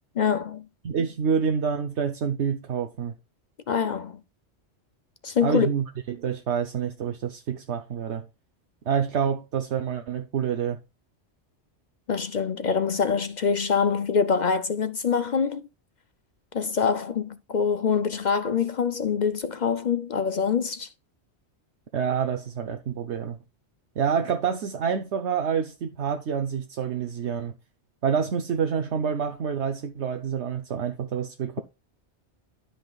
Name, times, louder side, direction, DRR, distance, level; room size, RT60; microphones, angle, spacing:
voice 1, 0.2-0.6 3.7-4.2 5.2-5.7 12.1-15.7 16.5-20.9, left 6 dB, 50° left, 0.6 m, -25 dB
voice 2, 0.8-3.1 5.4-8.2 8.9-10.8 21.9-23.4 24.0-27.5 28.0-31.6, right 7 dB, 75° right, 1.1 m, -27 dB
12.5 x 5.7 x 2.3 m
omnidirectional pair, 1.2 m